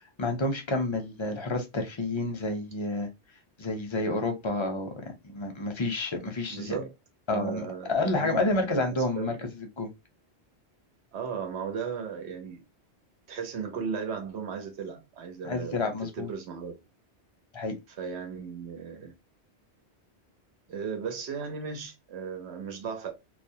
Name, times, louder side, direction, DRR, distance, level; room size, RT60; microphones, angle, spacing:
voice 1, 0.0-3.1 3.6-4.9 5.2-6.8 7.3-9.4 9.8-9.9 15.4-16.3 17.5-17.7, left 2 dB, 35° left, 0.5 m, -29 dB
voice 2, 6.5-6.9 7.3-9.3 11.1-12.6 13.3-16.8 18.0-19.1 20.7-23.1, right 6 dB, 90° right, 1.0 m, -36 dB
2.2 x 2.1 x 2.6 m
omnidirectional pair, 1.1 m